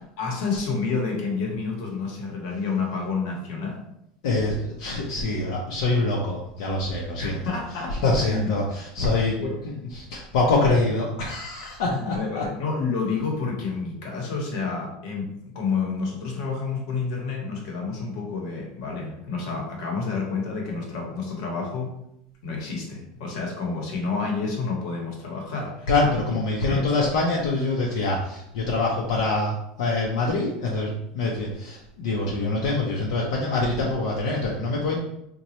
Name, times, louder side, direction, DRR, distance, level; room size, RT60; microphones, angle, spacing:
voice 1, 0.2-3.8 7.2-8.4 9.4-9.6 11.9-21.9 22.4-25.9 26.7-26.9, left 4 dB, 55° left, 0 dB, 0.9 m, -29 dB
voice 2, 4.2-7.5 7.9-9.4 9.6-12.4 25.9-35.0, left 2 dB, 75° left, -3 dB, 0.6 m, -25 dB
4.0 x 2.2 x 2.9 m, 0.78 s
supercardioid pair, 175°, 3 cm